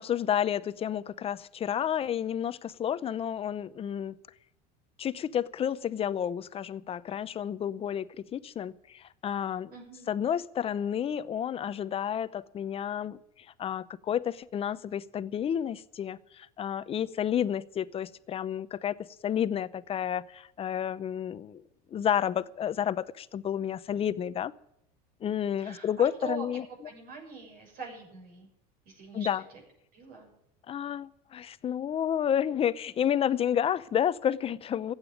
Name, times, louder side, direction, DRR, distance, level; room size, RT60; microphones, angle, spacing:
voice 1, 0.0-4.1 5.0-9.7 10.1-13.2 13.6-19.0 19.2-21.6 21.9-24.5 25.2-26.6 29.1-29.4 30.7-34.9, left 9 dB, 30° left, 0.7 m, -30 dB
voice 2, 9.7-10.1 25.6-26.5 26.8-28.5 28.8-29.6 29.9-30.3, right 5 dB, 50° right, 6.8 m, -43 dB
15.0 x 9.0 x 8.8 m
supercardioid pair, 120°, 19 cm